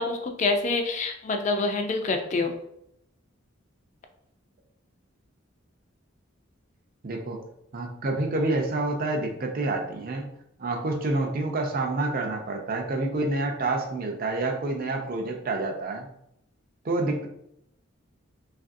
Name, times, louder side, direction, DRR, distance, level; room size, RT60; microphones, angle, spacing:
voice 1, 0.0-2.5, left 3 dB, 35° left, 5 dB, 0.3 m, -26 dB
voice 2, 7.0-7.4 7.7-10.3 10.6-16.1 16.8-17.3, right 2 dB, 45° right, 2 dB, 0.5 m, -28 dB
3.1 x 2.5 x 2.5 m, 0.76 s
head